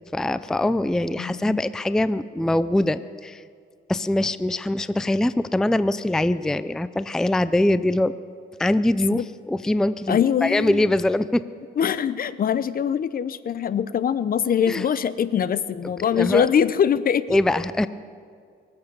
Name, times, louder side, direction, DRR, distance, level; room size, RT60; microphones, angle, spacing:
voice 1, 0.1-3.4 3.9-8.2 8.6-11.4 14.7-14.9 16.1-16.5 17.3-17.9, left 1 dB, 5° left, 14 dB, 0.4 m, -23 dB
voice 2, 1.2-1.6 9.1-9.3 10.1-10.9 11.8-17.4, left 8 dB, 45° left, 16 dB, 0.6 m, -23 dB
24.0 x 8.1 x 6.8 m, 2.2 s
cardioid pair, 90°, 20 cm